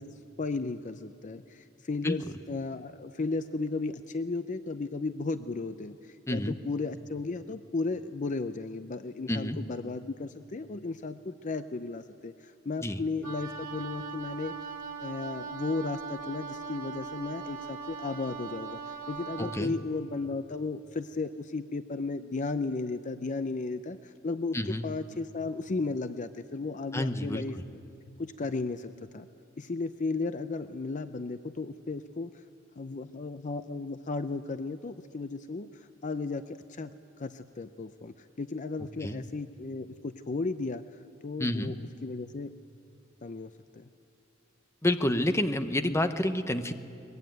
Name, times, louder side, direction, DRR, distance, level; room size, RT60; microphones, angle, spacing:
voice 1, 0.0-14.5 15.0-24.6 24.8-27.6 28.2-29.3 29.6-32.5 32.8-41.7 42.0-42.5 43.2-43.9, left 3 dB, 40° left, 10 dB, 0.6 m, -35 dB
Wind instrument woodwind instrument, 13.2-19.7, right 5 dB, 85° right, 2.3 m, -40 dB
voice 2, 19.4-19.7 24.5-24.8 26.9-27.6 39.0-39.2 41.4-41.7 44.8-46.7, left 1 dB, 15° left, 8 dB, 0.9 m, -29 dB
23.0 x 21.0 x 9.3 m, 2.6 s
head